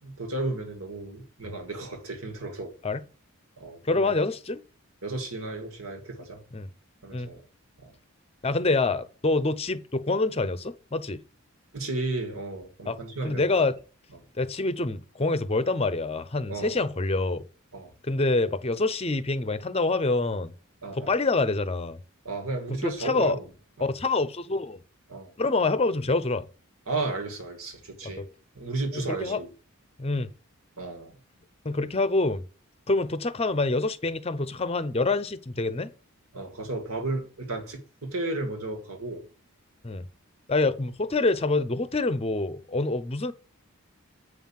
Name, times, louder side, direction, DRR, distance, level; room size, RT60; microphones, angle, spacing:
voice 1, 0.0-2.7 3.6-4.1 5.0-6.4 7.0-7.4 7.8-7.9 11.7-13.4 14.1-14.2 16.5-16.9 17.7-17.9 20.8-21.1 22.2-23.5 23.8-23.9 25.1-25.3 26.9-28.3 28.5-29.5 30.8-31.1 36.3-39.2 40.6-40.8, right 2 dB, 75° right, 2.3 m, -33 dB
voice 2, 3.8-4.6 6.5-6.7 7.1-7.3 8.4-11.2 12.9-13.0 13.2-13.7 14.4-17.4 18.1-20.5 21.0-22.0 22.8-23.4 23.8-24.8 25.4-26.4 28.9-29.4 30.0-30.3 31.6-32.4 32.9-35.9 39.8-40.0 40.5-43.3, left 3 dB, 25° left, 0.6 m, -26 dB
7.9 x 5.7 x 7.3 m
head